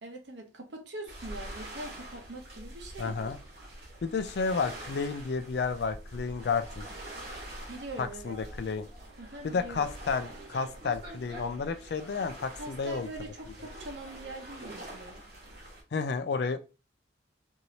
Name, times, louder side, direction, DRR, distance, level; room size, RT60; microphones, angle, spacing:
voice 1, 0.0-3.3 7.7-8.4 9.2-9.9 12.6-15.2, right 2 dB, 70° right, 0.8 m, -43 dB
sound 1, 1.1-15.8, right 1 dB, 55° right, 1.3 m, -45 dB
voice 2, 3.0-3.4 4.0-6.9 8.0-8.9 9.4-13.1 15.9-16.6, left 5 dB, 60° left, 0.3 m, -31 dB
3.1 x 2.7 x 2.7 m
head